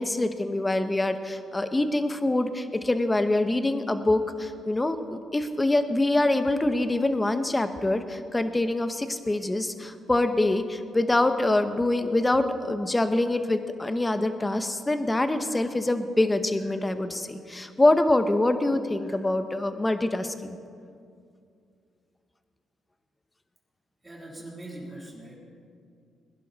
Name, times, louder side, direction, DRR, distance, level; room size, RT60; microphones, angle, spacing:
voice 1, 0.0-20.6, left 2 dB, 15° left, 9 dB, 1.0 m, -25 dB
voice 2, 24.0-25.4, right 1 dB, 20° right, -2 dB, 3.2 m, -41 dB
21.0 x 11.0 x 4.1 m, 2.4 s
cardioid pair, 90°, 0 cm